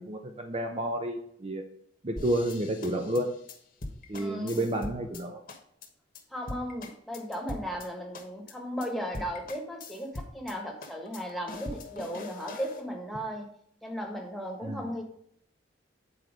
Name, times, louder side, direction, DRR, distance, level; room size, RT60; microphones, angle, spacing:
voice 1, 0.0-1.6 2.0-3.3 4.1-5.4 14.6-14.8, right 1 dB, 30° right, 4 dB, 0.6 m, -30 dB
sound 1, 2.2-5.2 5.5-5.9 6.1-6.2 6.5-7.9 8.1-8.5 8.8-8.9 9.1-10.5 10.8-12.8, left 2 dB, 50° left, 1.2 m, -42 dB
voice 2, 4.1-4.6 6.3-13.4 13.8-15.0, equal, ahead, 0 dB, 1.4 m, -36 dB
8.5 x 4.5 x 5.1 m, 0.69 s
head